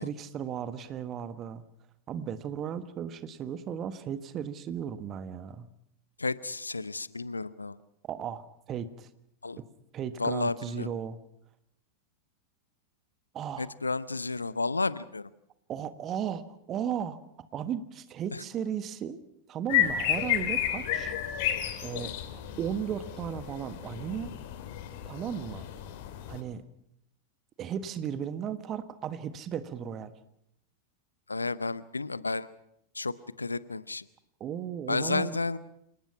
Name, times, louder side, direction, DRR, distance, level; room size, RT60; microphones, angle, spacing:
voice 1, 0.0-1.6 2.1-5.7 8.1-9.1 9.6-9.7 9.9-11.2 13.3-13.7 15.7-17.2 17.5-19.2 19.5-21.2 21.8-24.3 25.0-25.7 26.3-26.6 27.6-30.1 34.4-35.3, right 8 dB, 30° right, 13 dB, 1.4 m, -35 dB
voice 2, 6.2-7.8 9.4-9.6 10.2-10.9 13.6-15.3 18.3-18.4 31.3-32.5 32.9-34.1 34.9-35.6, left 3 dB, 80° left, 18 dB, 0.7 m, -32 dB
sound 1, 19.7-26.4, left 11 dB, 50° left, 2.5 m, -32 dB
28.0 x 18.5 x 5.8 m, 0.75 s
figure-of-eight pair, 90°, 0 cm